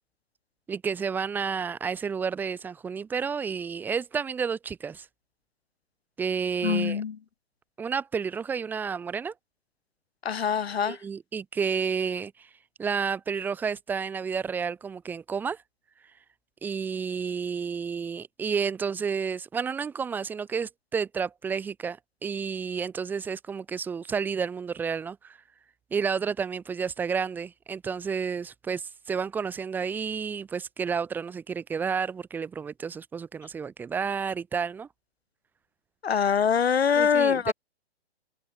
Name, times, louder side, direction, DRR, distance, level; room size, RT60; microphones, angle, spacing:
voice 1, 0.7-5.1 6.2-7.0 7.8-9.3 10.8-12.5 12.8-15.6 16.6-25.4 25.9-34.9 36.9-37.5, right 6 dB, 5° right, 4.4 m, -31 dB
voice 2, 6.6-7.2 10.2-11.0 36.0-37.5, left 7 dB, 65° left, 5.1 m, -24 dB
hypercardioid pair, 180°, 33 cm